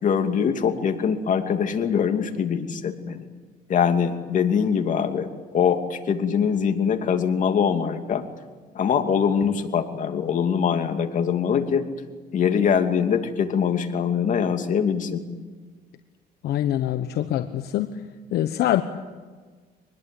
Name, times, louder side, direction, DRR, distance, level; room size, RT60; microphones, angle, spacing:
voice 1, 0.0-3.2 3.7-5.3 5.5-8.2 8.7-11.8 12.3-15.2, left 7 dB, 50° left, 5 dB, 2.7 m, -23 dB
voice 2, 16.4-18.0 18.3-18.8, left 12 dB, 75° left, 8 dB, 1.2 m, -24 dB
25.0 x 20.5 x 8.6 m, 1.4 s
cardioid pair, 110°, 17 cm